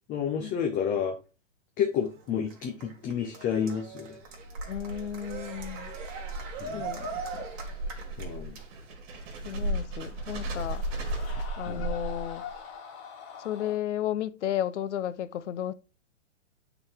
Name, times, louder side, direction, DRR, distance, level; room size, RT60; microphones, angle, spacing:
voice 1, 0.1-1.2 1.8-4.2 6.6-6.9 8.2-8.6 11.7-11.9, left 8 dB, 20° left, 0.8 m, -30 dB
Cheering, 1.9-8.9, right 5 dB, 35° right, 1.9 m, -41 dB
sound 1, 4.2-12.5, right 1 dB, 55° right, 2.1 m, -36 dB
voice 2, 4.7-5.9 6.7-7.4 9.4-10.8 11.6-12.4 13.4-15.7, left 10 dB, 65° left, 0.7 m, -33 dB
sound 2, 9.3-13.8, left 7 dB, 35° left, 1.9 m, -45 dB
8.6 x 4.0 x 3.5 m
hypercardioid pair, 125°, 38 cm